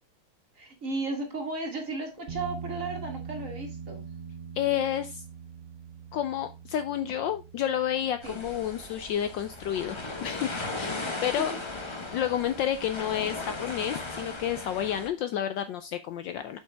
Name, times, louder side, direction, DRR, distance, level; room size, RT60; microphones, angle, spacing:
voice 1, 0.6-4.0 8.2-8.4 11.0-11.3, right 3 dB, 40° right, 3 dB, 1.9 m, -35 dB
sound 1, 2.3-14.6, right 6 dB, 85° right, 1.9 m, -45 dB
voice 2, 4.6-5.2 6.1-11.5 12.1-16.6, left 10 dB, 75° left, 10 dB, 1.1 m, -30 dB
sound 2, 8.2-15.1, left 2 dB, 25° left, 0.6 m, -37 dB
7.6 x 5.5 x 3.4 m, 0.26 s
omnidirectional pair, 2.4 m